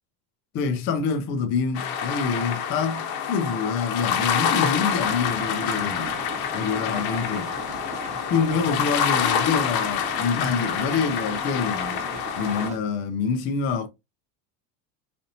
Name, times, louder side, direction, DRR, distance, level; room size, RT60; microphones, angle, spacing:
voice 1, 0.5-6.2 6.5-7.5 8.3-12.0 12.4-13.9, left 5 dB, 30° left, 0.4 m, -26 dB
sound 1, 1.7-12.7, left 8 dB, 50° left, 0.8 m, -27 dB
sound 2, 4.1-12.8, right 3 dB, 15° right, 0.9 m, -39 dB
4.1 x 2.7 x 2.7 m
supercardioid pair, 115°, 47 cm